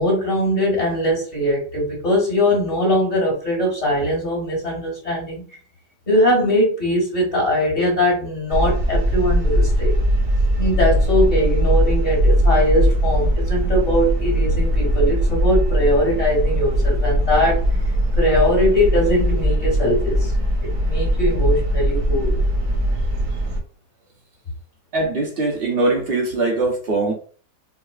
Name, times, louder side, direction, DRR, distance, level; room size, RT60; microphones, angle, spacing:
voice 1, 0.0-5.4 6.1-9.9 10.6-17.6 18.2-20.3 20.6-22.4, left 1 dB, 40° left, -5 dB, 1.7 m, -21 dB
sound 1, 8.5-23.6, equal, 70° right, 1.4 m, -20 dB
voice 2, 24.9-27.1, right 2 dB, 55° right, 0 dB, 0.7 m, -21 dB
4.8 x 2.0 x 2.3 m, 0.41 s
omnidirectional pair, 1.8 m